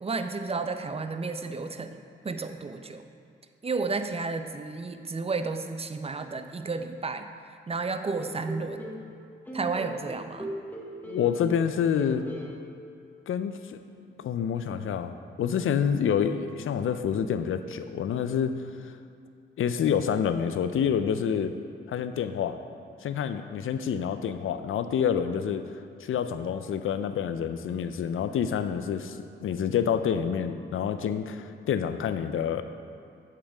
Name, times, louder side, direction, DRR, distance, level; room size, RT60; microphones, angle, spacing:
voice 1, 0.0-3.0 3.6-7.3 7.7-8.9 9.5-10.5, right 4 dB, 30° right, 8 dB, 0.5 m, -32 dB
sound 1, 8.2-9.0 9.5-11.7 11.9-12.5, equal, 10° left, 1.3 m, -38 dB
voice 2, 11.0-12.2 13.3-13.8 14.2-18.5 19.6-21.5 21.9-22.6 23.0-25.7 26.0-32.6, left 8 dB, 75° left, 10 dB, 0.5 m, -28 dB
8.5 x 7.5 x 3.5 m, 2.3 s
cardioid pair, 70°, 21 cm